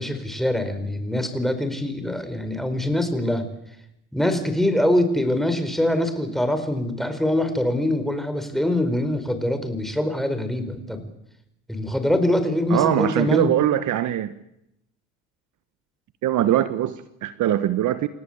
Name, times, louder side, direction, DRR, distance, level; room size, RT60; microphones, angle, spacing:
voice 1, 0.0-3.5 4.1-11.1 11.7-13.5, left 1 dB, ahead, 8 dB, 5.2 m, -24 dB
voice 2, 12.7-14.3 16.2-18.1, right 12 dB, 55° right, 12 dB, 1.4 m, -22 dB
29.0 x 17.5 x 8.3 m, 0.80 s
supercardioid pair, 90°, 37 cm